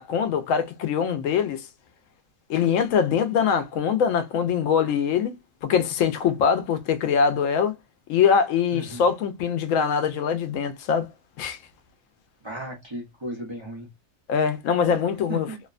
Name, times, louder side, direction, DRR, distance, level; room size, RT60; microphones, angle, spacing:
voice 1, 0.0-1.6 2.5-5.4 5.6-7.7 8.1-11.1 11.4-11.6 14.3-15.5, left 7 dB, 85° left, 1.0 m, -23 dB
voice 2, 12.4-13.9 15.3-15.6, right 1 dB, 30° right, 0.6 m, -35 dB
2.7 x 2.1 x 2.3 m
omnidirectional pair, 1.3 m